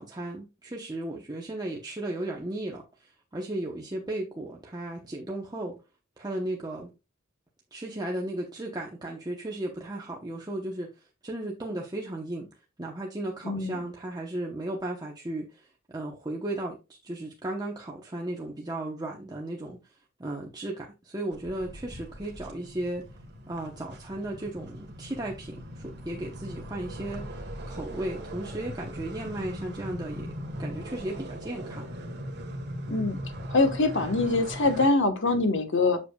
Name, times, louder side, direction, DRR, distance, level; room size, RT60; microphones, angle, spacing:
voice 1, 0.0-5.7 6.2-6.9 7.7-12.5 12.8-16.8 17.0-19.9 20.2-23.0 23.5-30.3 30.6-31.9, right 1 dB, 20° right, 0.9 m, -35 dB
voice 2, 13.4-13.8 32.9-33.2 33.5-36.0, left 3 dB, 60° left, 1.1 m, -24 dB
sound 1, 21.3-34.9, equal, 50° right, 1.4 m, -39 dB
7.5 x 6.7 x 2.3 m
head